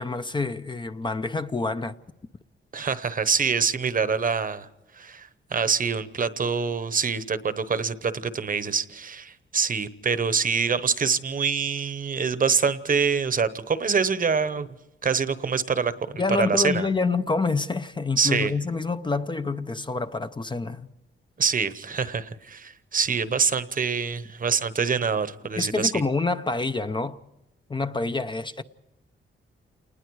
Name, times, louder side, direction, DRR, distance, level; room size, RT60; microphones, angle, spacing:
voice 1, 0.0-2.0 16.2-20.9 25.6-27.2 27.7-28.6, left 3 dB, 20° left, 0.6 m, -27 dB
voice 2, 2.7-4.7 5.0-14.7 15.0-15.9 16.4-16.9 18.2-18.5 21.4-26.0, right 5 dB, 40° right, 1.0 m, -25 dB
28.5 x 20.0 x 4.8 m
wide cardioid pair, 125°, 21 cm